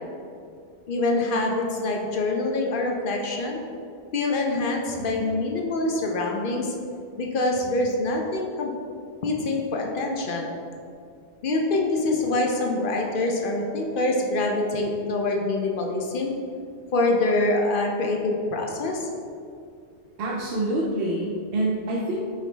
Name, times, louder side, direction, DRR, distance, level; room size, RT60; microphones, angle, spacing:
voice 1, 0.9-3.6 4.1-6.7 7.2-8.7 9.2-10.6 11.4-16.4 16.9-19.1, left 2 dB, 60° left, 0 dB, 0.6 m, -25 dB
voice 2, 20.2-22.2, right 1 dB, 65° right, -4 dB, 0.7 m, -26 dB
5.0 x 3.1 x 3.2 m, 2.4 s
omnidirectional pair, 1.1 m